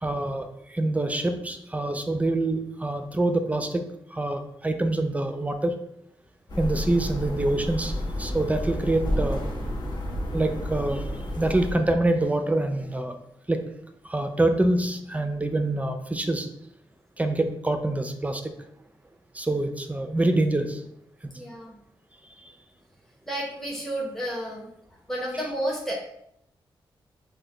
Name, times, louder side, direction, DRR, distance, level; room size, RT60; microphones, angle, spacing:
voice 1, 0.0-5.8 6.6-9.5 10.3-11.1 11.4-13.2 13.5-13.7 14.0-16.5 17.2-18.5 19.3-20.8 21.2-21.3 22.4-22.5, right 2 dB, 15° right, 7 dB, 0.5 m, -26 dB
sound 1, 6.5-11.7, left 1 dB, 50° left, 1.0 m, -31 dB
voice 2, 21.3-21.8 23.3-24.7 25.1-25.9, right 1 dB, 5° left, -4 dB, 1.0 m, -31 dB
4.8 x 2.2 x 3.8 m, 0.77 s
cardioid pair, 70°, 9 cm